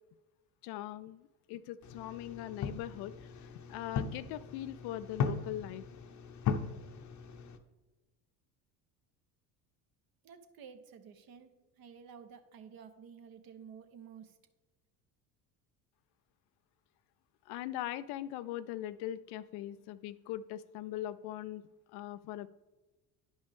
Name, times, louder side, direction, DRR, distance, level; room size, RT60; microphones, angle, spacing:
voice 1, 0.6-5.8 17.5-21.6 21.9-22.5, left 13 dB, 55° left, 14 dB, 0.5 m, -41 dB
sound 1, 1.8-7.6, left 6 dB, 40° left, 0.8 m, -38 dB
voice 2, 10.2-14.4, right 7 dB, 50° right, 8 dB, 1.0 m, -52 dB
10.5 x 5.3 x 3.5 m, 1.2 s
hypercardioid pair, 70°, 47 cm